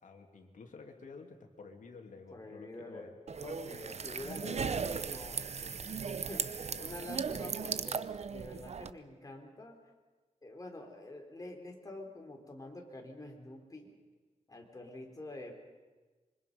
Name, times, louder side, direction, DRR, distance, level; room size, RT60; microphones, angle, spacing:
voice 1, 0.0-3.1 6.7-7.0, left 4 dB, 80° left, 3 dB, 2.9 m, -51 dB
voice 2, 2.3-3.1 3.4-9.8 10.4-14.0 14.5-15.5, left 1 dB, 25° left, 2 dB, 4.0 m, -47 dB
sound 1, 3.3-8.9, right 6 dB, 55° right, 0.7 m, -37 dB
26.5 x 24.5 x 5.5 m, 1.3 s
wide cardioid pair, 125°, 13 cm